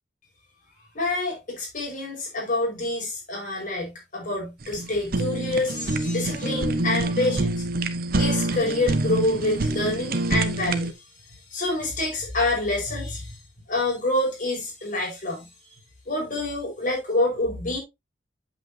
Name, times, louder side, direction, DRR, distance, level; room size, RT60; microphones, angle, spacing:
voice 1, 0.9-7.5 8.1-10.9 11.5-13.4 13.7-15.4 16.1-17.8, left 2 dB, 50° left, 5.5 m, -27 dB
Fire, 4.6-10.9, right 2 dB, 55° right, 0.9 m, -26 dB
8.2 x 8.0 x 2.8 m
head